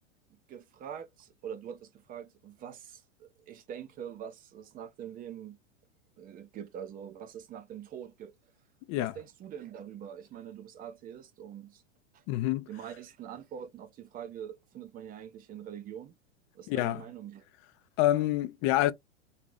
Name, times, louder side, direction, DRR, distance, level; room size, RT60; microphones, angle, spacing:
voice 1, 0.3-5.6 6.2-8.3 8.9-11.8 12.1-12.2 12.7-16.2 16.5-17.4, right 9 dB, 25° right, 0.5 m, -44 dB
voice 2, 12.3-12.7 16.7-17.0 18.0-18.9, left 15 dB, 35° left, 0.4 m, -27 dB
2.5 x 2.5 x 3.2 m
hypercardioid pair, 110°, 36 cm